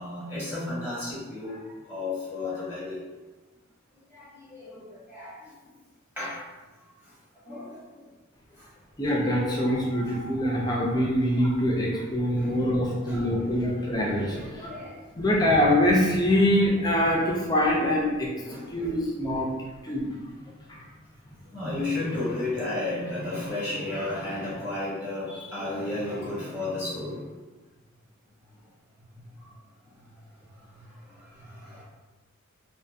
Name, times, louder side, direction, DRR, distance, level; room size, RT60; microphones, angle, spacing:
voice 1, 0.0-3.0 4.1-5.4 6.2-6.4 7.4-7.8 8.6-8.7 10.0-10.1 12.3-12.7 13.0-13.4 14.3-15.0 18.4-19.0 21.5-27.2 29.1-29.3 30.7-30.8 31.3-31.8, left 2 dB, 10° right, -10 dB, 0.9 m, -33 dB
voice 2, 9.0-14.7 15.1-18.3 18.7-19.5 19.8-20.2 20.7-20.8, left 1 dB, 20° left, -2 dB, 0.4 m, -24 dB
2.6 x 2.5 x 2.4 m, 1.2 s
head